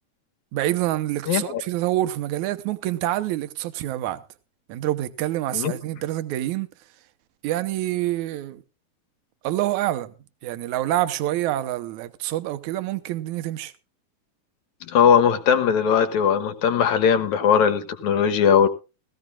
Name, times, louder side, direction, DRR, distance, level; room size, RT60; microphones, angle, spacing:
voice 1, 0.5-4.2 4.7-6.7 7.4-8.6 9.4-10.1 10.4-13.7, right 14 dB, 80° right, 2.2 m, -26 dB
voice 2, 1.3-1.6 5.5-5.7 14.8-18.7, left 7 dB, 75° left, 2.6 m, -19 dB
18.5 x 15.0 x 2.3 m
omnidirectional pair, 3.4 m